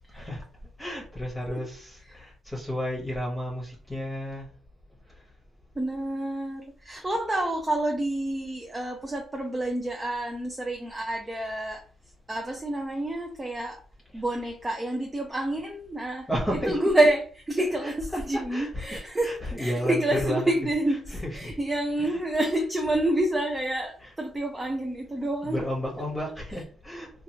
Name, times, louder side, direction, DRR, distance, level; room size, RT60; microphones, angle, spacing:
voice 1, 0.1-0.4 0.8-4.5 6.9-7.1 16.3-17.1 17.6-20.6 20.8-22.2 24.0-24.1 25.4-27.1, equal, 10° left, 1.0 m, -33 dB
voice 2, 5.8-11.9 12.3-13.8 14.1-25.7, right 1 dB, 15° right, 0.5 m, -28 dB
2.9 x 2.4 x 2.8 m
cardioid pair, 90°, 0 cm